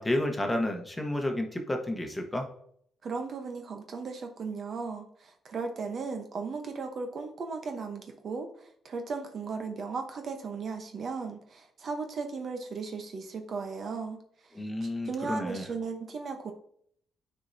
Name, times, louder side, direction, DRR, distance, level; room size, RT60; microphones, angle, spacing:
voice 1, 0.0-2.5 14.5-15.6, left 1 dB, 15° left, 3 dB, 1.2 m, -31 dB
voice 2, 3.0-14.5 14.8-16.5, right 4 dB, 50° right, 5 dB, 1.0 m, -36 dB
9.3 x 4.5 x 2.7 m, 0.65 s
cardioid pair, 90°, 0 cm